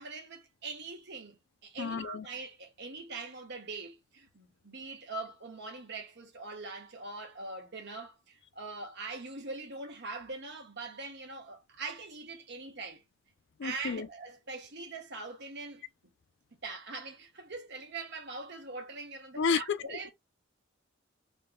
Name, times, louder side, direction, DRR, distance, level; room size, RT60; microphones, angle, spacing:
voice 1, 0.0-13.0 13.6-15.8 16.6-20.1, right 3 dB, 60° right, 1.3 m, -42 dB
voice 2, 1.8-2.3 13.6-14.1 19.4-20.1, left 5 dB, 60° left, 0.4 m, -31 dB
3.7 x 2.3 x 3.7 m
head